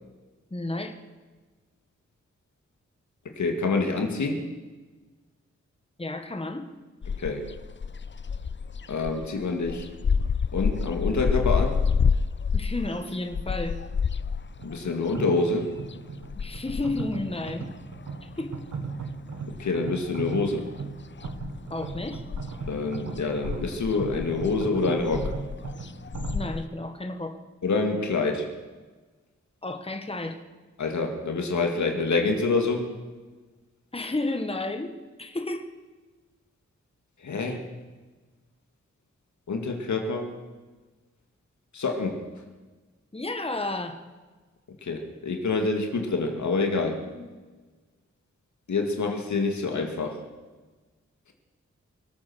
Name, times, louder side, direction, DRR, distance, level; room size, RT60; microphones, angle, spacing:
voice 1, 0.5-0.9 6.0-6.7 12.5-13.8 16.3-17.7 18.2-18.6 21.7-22.2 26.3-27.4 29.6-30.4 33.9-34.9 35.2-35.7 43.1-44.0 47.1-47.3, left 2 dB, 20° left, 6 dB, 1.8 m, -32 dB
voice 2, 3.4-4.5 7.2-7.4 8.9-9.9 10.5-11.8 14.6-15.7 19.6-20.7 22.7-25.3 27.6-28.5 30.8-32.9 37.2-37.6 39.5-40.3 41.7-42.2 44.8-47.0 48.7-50.2, left 3 dB, 75° left, 4 dB, 2.3 m, -26 dB
sound 1, 7.0-18.6 18.9-20.2 20.5-26.7, left 6 dB, 40° left, 0.6 m, -29 dB
sound 2, 14.6-26.5, right 4 dB, 70° right, 1.8 m, -37 dB
23.5 x 8.6 x 6.2 m, 1.3 s
cardioid pair, 45°, 29 cm